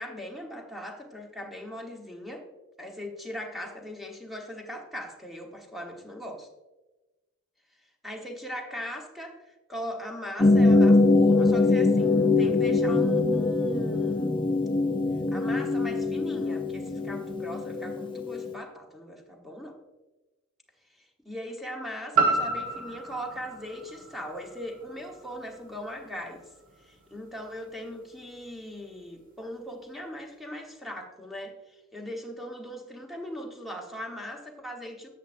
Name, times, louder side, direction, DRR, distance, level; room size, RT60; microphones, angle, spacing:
voice 1, 0.0-2.4 2.8-6.5 8.0-14.3 15.3-19.8 20.9-26.5 26.8-35.1, equal, ahead, 1 dB, 1.2 m, -39 dB
sound 1, 10.4-18.5, left 3 dB, 25° left, 0.5 m, -23 dB
sound 2, 22.1-26.2 26.7-26.8, right 3 dB, 40° right, 1.3 m, -30 dB
10.0 x 8.4 x 2.6 m, 1.1 s
head